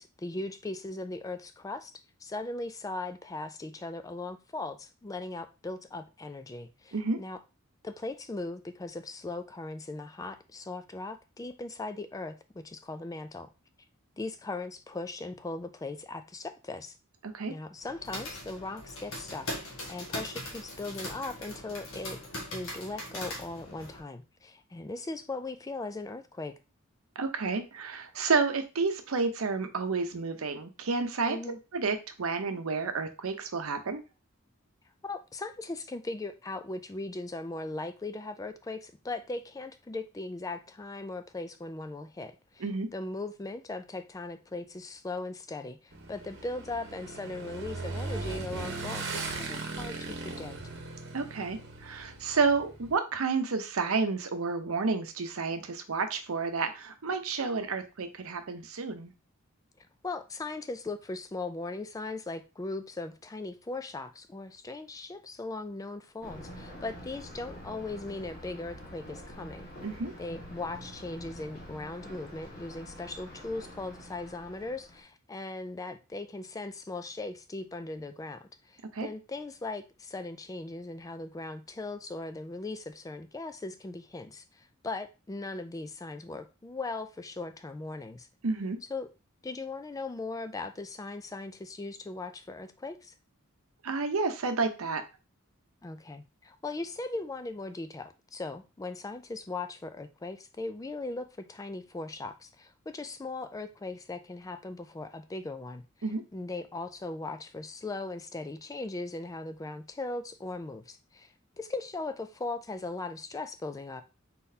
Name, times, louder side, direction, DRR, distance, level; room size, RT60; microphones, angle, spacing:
voice 1, 0.0-7.4 7.8-13.5 14.2-17.0 17.5-22.2 22.5-26.6 31.3-31.6 35.0-42.7 42.9-50.6 60.0-69.7 70.2-88.3 88.9-89.1 89.4-93.1 95.8-105.8 106.3-114.0, left 2 dB, 15° left, 0.3 m, -39 dB
voice 2, 17.2-17.5 27.2-31.4 31.7-34.0 42.6-42.9 51.1-59.1 69.8-70.1 78.9-79.1 88.4-88.8 93.8-95.0 106.0-106.2, right 4 dB, 90° right, 0.7 m, -30 dB
sound 1, 17.8-24.0, left 1 dB, 70° left, 1.5 m, -40 dB
Motorcycle / Engine, 45.9-52.9, right 3 dB, 55° right, 1.0 m, -38 dB
Thunder, 66.2-75.0, equal, 45° left, 1.5 m, -46 dB
4.0 x 3.9 x 2.7 m
head